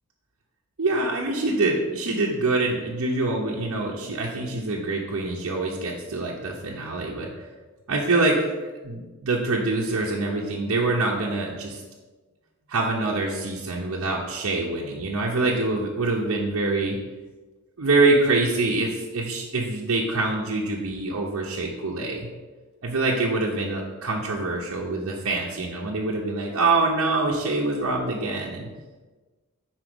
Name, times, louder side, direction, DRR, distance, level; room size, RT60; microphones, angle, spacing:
voice 1, 0.8-7.3 7.9-8.4 8.8-11.8 12.7-17.0 17.8-22.3 22.8-28.7, right 2 dB, 65° right, -3 dB, 0.8 m, -25 dB
6.1 x 4.4 x 4.9 m, 1.3 s
head